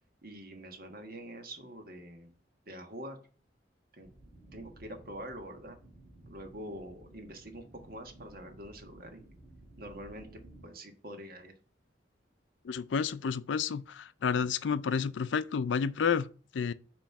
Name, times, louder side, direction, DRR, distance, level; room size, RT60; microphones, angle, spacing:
voice 1, 0.2-2.3 2.7-3.2 3.9-4.1 4.5-5.8 6.3-9.3 9.8-10.3 10.6-11.5, right 1 dB, 55° right, 1.4 m, -45 dB
sound 1, 4.0-10.7, right 1 dB, 20° right, 3.4 m, -55 dB
voice 2, 12.6-16.7, left 6 dB, 90° left, 0.4 m, -30 dB
8.8 x 3.1 x 5.7 m
head